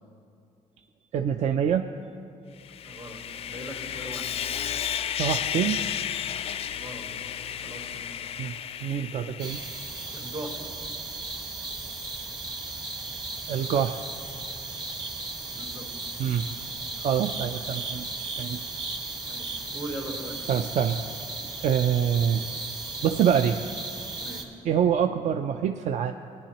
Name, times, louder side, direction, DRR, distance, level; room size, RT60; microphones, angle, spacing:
voice 1, 1.1-1.9 5.2-5.8 8.4-8.6 8.8-9.6 13.5-14.0 16.2-16.5 17.0-18.6 20.5-21.0 21.6-22.5 23.0-23.6 24.7-26.1, right 8 dB, 60° right, 7 dB, 0.4 m, -25 dB
Sawing, 2.6-10.0, left 9 dB, 45° left, 0.3 m, -33 dB
voice 2, 2.8-4.3 6.7-7.2 7.6-8.0 10.1-10.7 15.5-15.9 19.2-20.4 24.2-24.5, right 1 dB, 85° right, -4 dB, 3.3 m, -40 dB
sound 1, 9.4-24.4, right 3 dB, 30° right, 1.3 m, -36 dB
19.0 x 10.0 x 2.9 m, 2.5 s
cardioid pair, 105°, 14 cm